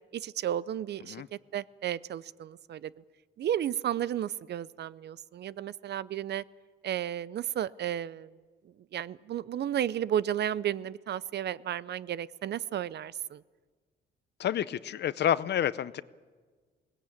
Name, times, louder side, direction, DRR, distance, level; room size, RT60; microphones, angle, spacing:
voice 1, 0.1-1.2 1.5-2.9 3.4-6.4 6.8-8.3 8.9-13.4, right 10 dB, 60° right, 19 dB, 0.6 m, -33 dB
voice 2, 14.4-16.0, left 10 dB, 60° left, 17 dB, 0.7 m, -29 dB
21.0 x 18.0 x 8.6 m, 1.5 s
cardioid pair, 90°, 20 cm